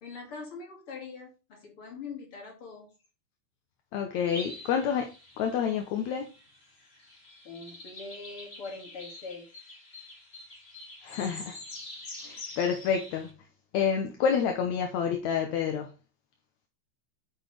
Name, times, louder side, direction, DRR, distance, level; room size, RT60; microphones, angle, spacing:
voice 1, 0.0-2.9 7.4-9.5, left 4 dB, 50° left, 3.0 m, -42 dB
voice 2, 3.9-5.1 5.4-6.3 11.0-11.6 12.2-13.4 13.7-15.9, left 7 dB, 75° left, 2.3 m, -28 dB
sound 1, 4.3-13.3, left 2 dB, 30° left, 1.4 m, -46 dB
8.7 x 6.3 x 3.4 m
omnidirectional pair, 3.4 m